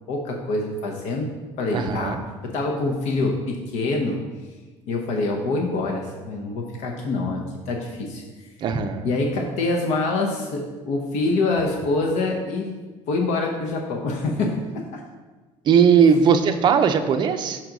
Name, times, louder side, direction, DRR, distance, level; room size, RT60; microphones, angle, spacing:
voice 1, 0.1-1.3 1.6-2.2 2.5-4.2 4.9-7.4 7.7-8.2 9.0-12.7 13.1-15.0, left 2 dB, 70° left, 0 dB, 0.9 m, -25 dB
voice 2, 1.7-2.2 8.6-9.1 15.6-17.6, right 6 dB, 40° right, 7 dB, 0.5 m, -18 dB
6.1 x 3.8 x 5.9 m, 1.3 s
cardioid pair, 155°, 12 cm